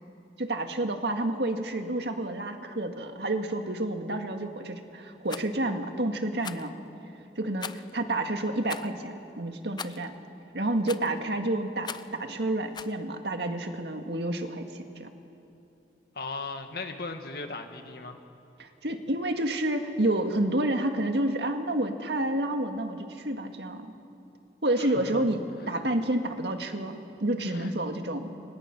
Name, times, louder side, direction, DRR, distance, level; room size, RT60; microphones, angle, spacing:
voice 1, 0.4-6.7 7.4-10.1 10.5-15.1 18.6-23.9 24.6-25.4 25.7-28.3, right 1 dB, 75° right, 5 dB, 1.9 m, -29 dB
Rattle, 5.2-5.5 6.4-6.7 7.6-7.9 8.7-8.9 9.8-10.1 10.9-11.2 11.8-12.2 12.7-13.0, left 6 dB, 25° left, 0.5 m, -39 dB
voice 2, 16.1-18.2 24.8-25.2 25.6-25.7 27.4-27.7, left 3 dB, 60° left, 5 dB, 2.0 m, -38 dB
29.5 x 26.5 x 6.0 m, 2.7 s
head